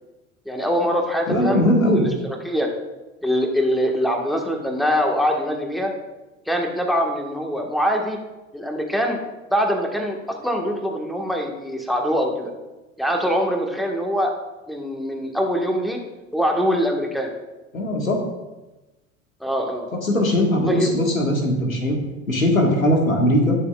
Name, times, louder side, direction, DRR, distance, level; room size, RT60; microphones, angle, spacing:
voice 1, 0.4-2.7 3.2-5.9 6.5-8.2 8.5-9.2 9.5-12.5 13.0-14.3 14.7-16.0 16.3-17.3 19.4-19.9 20.7-20.9, equal, ahead, 2 dB, 1.5 m, -23 dB
voice 2, 1.3-2.0 17.7-18.2 20.0-22.0 22.3-23.6, left 1 dB, 85° left, 1 dB, 1.7 m, -19 dB
19.5 x 6.7 x 2.4 m, 1.1 s
figure-of-eight pair, 75°, 40 cm